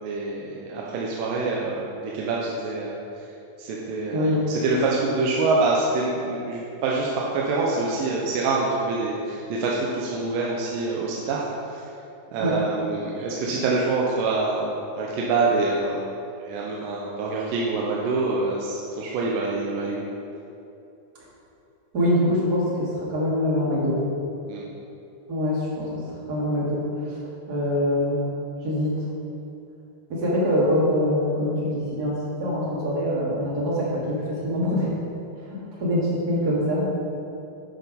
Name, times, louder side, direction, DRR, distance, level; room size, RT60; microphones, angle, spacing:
voice 1, 0.0-3.0 3.6-11.9 12.3-16.1 16.4-20.1 24.5-24.6, right 3 dB, 85° right, -4 dB, 2.4 m, -26 dB
voice 2, 4.1-4.5 12.4-12.5 21.9-24.0 25.3-25.9 26.3-27.2 27.5-28.3 28.6-28.9 30.1-34.0 34.4-34.9 35.4-36.9, left 1 dB, 35° right, -6 dB, 1.8 m, -24 dB
10.0 x 4.7 x 5.1 m, 2.8 s
omnidirectional pair, 3.9 m